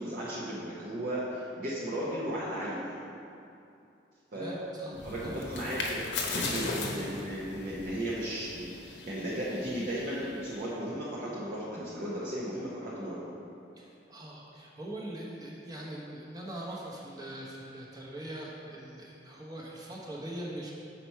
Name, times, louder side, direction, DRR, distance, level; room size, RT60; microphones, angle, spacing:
voice 1, 0.0-2.9 4.3-4.6 4.9-6.0 6.2-13.2, equal, 55° right, -7 dB, 0.8 m, -35 dB
voice 2, 4.3-5.7 6.2-7.2 13.8-20.7, right 1 dB, 25° right, -3 dB, 1.0 m, -42 dB
sound 1, 4.9-10.7, left 3 dB, 90° left, 0.9 m, -38 dB
5.9 x 4.3 x 4.6 m, 2.6 s
head